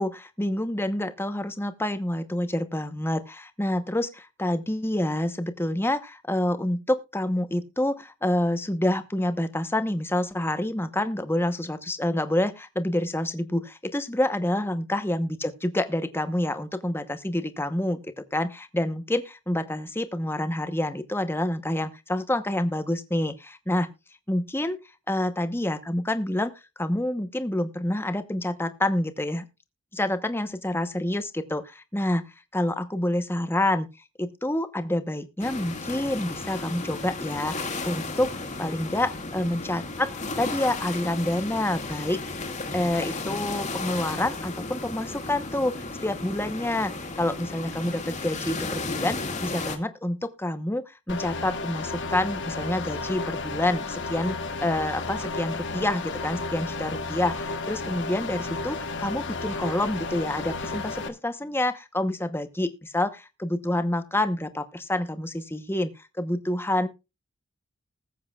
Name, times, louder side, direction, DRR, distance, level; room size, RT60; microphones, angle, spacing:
voice 1, 0.0-23.9 24.3-24.8 25.1-26.5 26.8-29.5 29.9-33.9 34.2-40.1 40.4-42.2 42.7-65.9 66.2-66.9, left 1 dB, 10° left, 1.0 m, -28 dB
sound 1, 35.4-49.8, left 3 dB, 35° left, 1.9 m, -34 dB
sound 2, 51.1-61.1, left 3 dB, 60° left, 1.5 m, -33 dB
20.0 x 7.9 x 2.4 m
head